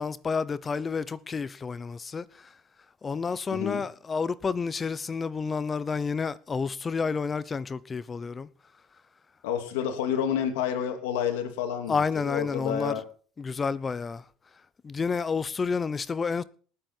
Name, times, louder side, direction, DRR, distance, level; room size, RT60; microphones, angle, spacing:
voice 1, 0.0-2.5 3.0-8.5 11.9-12.9 13.4-14.2 14.8-16.4, left 5 dB, 25° left, 0.8 m, -30 dB
voice 2, 3.5-3.8 9.4-13.0, left 8 dB, 90° left, 2.7 m, -29 dB
19.0 x 8.5 x 4.5 m
supercardioid pair, 120°, 0 cm